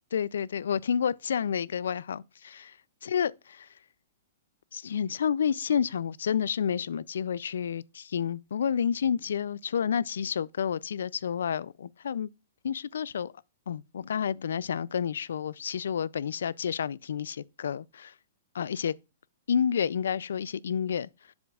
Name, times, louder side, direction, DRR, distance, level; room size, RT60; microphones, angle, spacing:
voice 1, 0.1-2.7 3.0-3.7 4.7-12.3 12.6-13.3 13.7-18.1 18.5-18.9 19.5-21.1, left 7 dB, 85° left, 0.3 m, -30 dB
7.7 x 7.1 x 2.3 m
hypercardioid pair, 180°, 0 cm